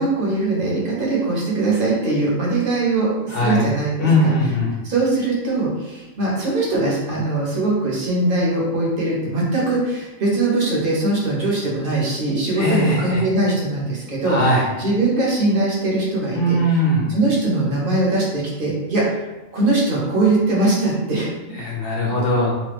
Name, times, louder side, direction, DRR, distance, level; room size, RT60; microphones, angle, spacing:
voice 1, 0.0-4.3 4.8-14.4 14.8-16.6 17.1-19.3 19.5-21.3, right 2 dB, 45° right, -5 dB, 0.9 m, -21 dB
voice 2, 3.3-3.7 4.0-4.7 12.5-13.2 14.2-14.7 16.3-17.1 21.6-22.5, left 1 dB, 55° left, -4 dB, 0.8 m, -19 dB
3.0 x 2.2 x 3.3 m, 1.1 s
omnidirectional pair, 1.4 m